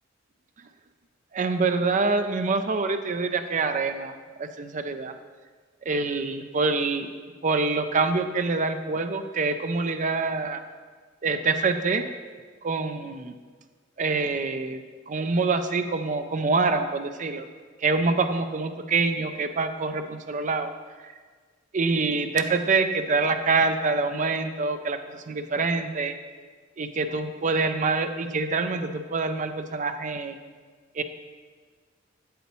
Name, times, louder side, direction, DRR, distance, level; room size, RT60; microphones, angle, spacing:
voice 1, 1.3-5.1 5.9-7.1 7.4-10.6 11.2-12.0 12.6-13.4 14.0-14.8 15.1-17.4 17.8-20.7 21.0-21.1 21.7-26.2 26.8-30.4 30.9-31.0, right 3 dB, 40° right, 8 dB, 0.5 m, -26 dB
8.1 x 7.7 x 3.1 m, 1.5 s
head